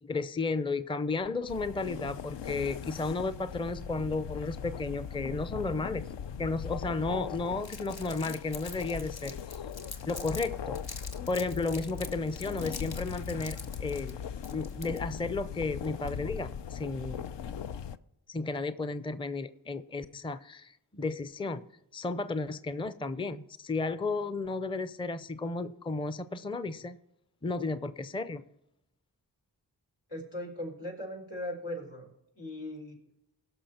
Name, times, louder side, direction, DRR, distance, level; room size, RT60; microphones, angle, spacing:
voice 1, 0.0-6.1 6.4-9.4 10.1-10.8 11.3-14.2 14.5-17.3 18.3-21.7 21.9-27.0 27.4-28.4, left 3 dB, 10° left, 14 dB, 0.5 m, -33 dB
sound 1, 1.5-18.0, left 7 dB, 70° left, 0.6 m, -39 dB
Crumpling crinkling, 7.6-10.5 10.7-15.2, left 4 dB, 55° left, 1.4 m, -45 dB
voice 2, 30.1-32.1 32.4-33.0, left 1 dB, 85° left, -2 dB, 3.9 m, -38 dB
17.0 x 6.1 x 4.3 m, 0.87 s
cardioid pair, 40°, 44 cm